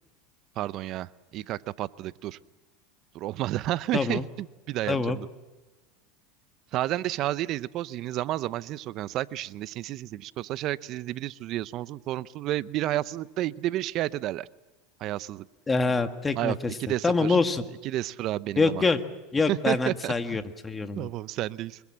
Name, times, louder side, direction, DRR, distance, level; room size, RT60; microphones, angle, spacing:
voice 1, 0.6-2.4 3.1-5.3 6.7-14.5 15.0-15.5 16.4-17.4 17.8-18.8 19.5-20.4 21.0-21.8, right 14 dB, 50° right, 17 dB, 0.8 m, -31 dB
voice 2, 3.9-4.3 4.9-5.2 15.7-16.7 17.0-17.6 18.6-19.0 19.3-21.1, left 3 dB, 15° left, 7 dB, 1.8 m, -25 dB
25.5 x 23.0 x 7.5 m, 1.1 s
supercardioid pair, 120°, 0 cm